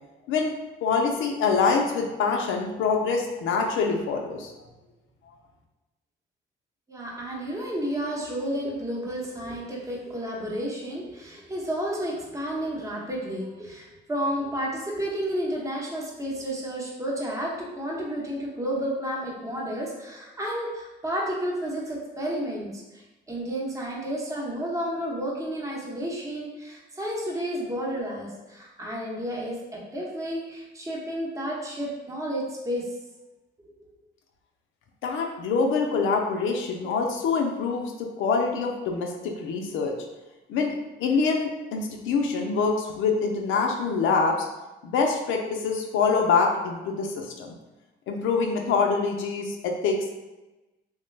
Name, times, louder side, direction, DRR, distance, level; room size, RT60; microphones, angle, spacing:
voice 1, 0.8-4.5 35.0-39.9 40.5-40.7 41.0-44.5 44.8-47.5 48.1-50.1, left 4 dB, 80° left, 1 dB, 0.5 m, -25 dB
voice 2, 6.9-32.9 33.6-33.9, equal, 15° right, -3 dB, 0.8 m, -31 dB
3.1 x 2.2 x 3.1 m, 1.1 s
cardioid pair, 90°, 20 cm